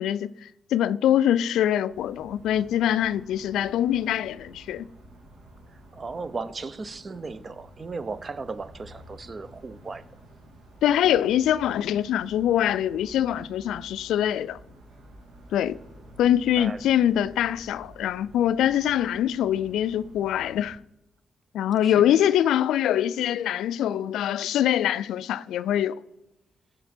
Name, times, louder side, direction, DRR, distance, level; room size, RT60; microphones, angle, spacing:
voice 1, 0.0-4.9 10.8-14.6 15.5-15.8 16.2-20.8 21.5-26.0, left 11 dB, 85° left, 0.3 m, -24 dB
sound 1, 1.9-20.7, right 1 dB, 85° right, 2.6 m, -50 dB
voice 2, 5.7-10.1 16.6-16.8 21.8-22.2, right 4 dB, 45° right, 0.7 m, -36 dB
15.5 x 5.2 x 4.3 m
supercardioid pair, 55°, 0 cm